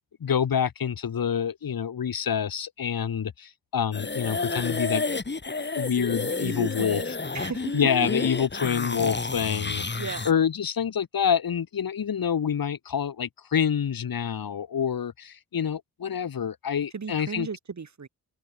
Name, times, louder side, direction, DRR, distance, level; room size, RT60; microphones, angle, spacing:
voice 1, 0.2-5.0 5.8-7.0 7.7-17.5, left 8 dB, 70° left, 5.6 m, -27 dB
sound 1, 3.9-10.3, left 3 dB, 30° left, 2.8 m, -30 dB
voice 2, 6.3-7.9 10.0-10.3 16.9-18.1, right 5 dB, 50° right, 5.4 m, -35 dB
open air
cardioid pair, 55°, 37 cm